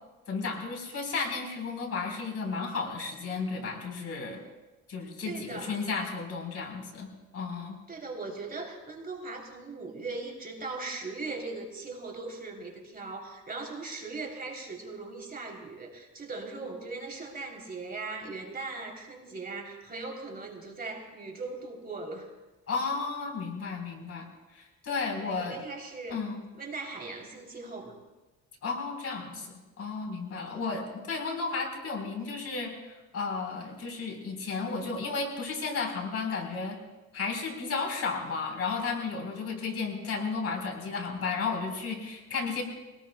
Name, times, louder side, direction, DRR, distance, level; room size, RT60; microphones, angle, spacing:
voice 1, 0.3-4.4 4.9-7.8 22.7-24.3 24.5-25.6 26.1-26.4 28.6-36.8 37.1-42.6, left 4 dB, 50° left, 1 dB, 4.2 m, -33 dB
voice 2, 5.2-5.8 7.9-22.3 25.2-26.2 26.5-27.9 30.5-30.6, right 3 dB, 30° right, 0 dB, 3.3 m, -39 dB
24.5 x 18.5 x 2.3 m, 1.1 s
cardioid pair, 90°, 30 cm